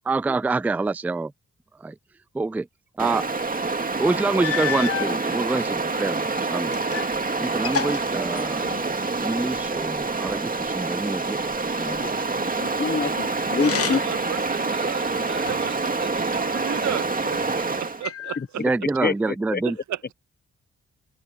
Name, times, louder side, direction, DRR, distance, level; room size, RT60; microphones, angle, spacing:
voice 1, 0.1-1.3 1.8-2.0 2.3-2.7 3.0-3.2 4.0-6.7 7.4-8.7 9.2-12.0 18.6-19.8, right 3 dB, 5° right, 0.3 m, -26 dB
Stream, 3.0-18.1, right 3 dB, 30° right, 2.2 m, -27 dB
sound 1, 4.4-5.2 5.9-7.2 7.4-9.0 13.5-14.3 14.8-15.8 16.5-17.3 18.0-18.8, left 8 dB, 50° left, 1.1 m, -31 dB
voice 2, 12.6-14.0 19.0-19.6, left 5 dB, 35° left, 1.1 m, -26 dB
voice 3, 13.9-18.7 19.6-20.1, right 11 dB, 75° right, 0.8 m, -34 dB
open air
cardioid pair, 65°, 29 cm